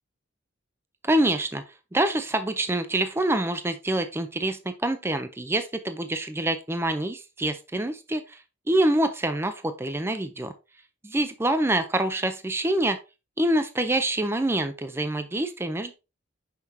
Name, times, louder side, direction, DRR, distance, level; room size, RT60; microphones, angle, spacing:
voice 1, 1.0-1.6 1.9-10.5 11.0-13.0 13.4-15.9, right 1 dB, 10° right, 9 dB, 0.4 m, -26 dB
6.0 x 5.9 x 2.7 m, 0.28 s
head